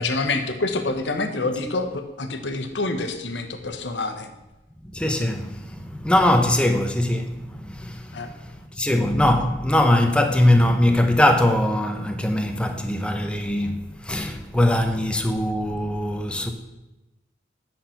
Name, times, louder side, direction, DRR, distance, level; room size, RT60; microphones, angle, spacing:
voice 1, 0.0-4.3 8.1-8.3 8.8-8.9, left 3 dB, 70° left, 1.0 m, -27 dB
voice 2, 4.8-16.5, left 1 dB, 5° left, 0.7 m, -21 dB
9.0 x 5.9 x 5.7 m
head